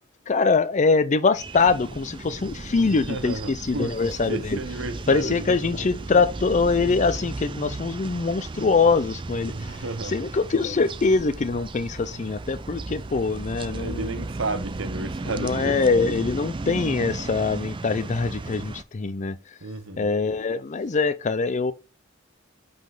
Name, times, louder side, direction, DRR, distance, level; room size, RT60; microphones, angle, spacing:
voice 1, 0.3-4.6 5.1-9.5 10.0-14.2 15.2-19.4 20.0-21.7, left 4 dB, 35° left, 0.4 m, -23 dB
sound 1, 1.3-18.8, right 3 dB, 25° right, 0.4 m, -35 dB
voice 2, 2.8-5.6 9.5-10.3 13.7-15.9 19.6-20.1, right 3 dB, 65° right, 0.9 m, -33 dB
5.5 x 5.2 x 3.8 m
head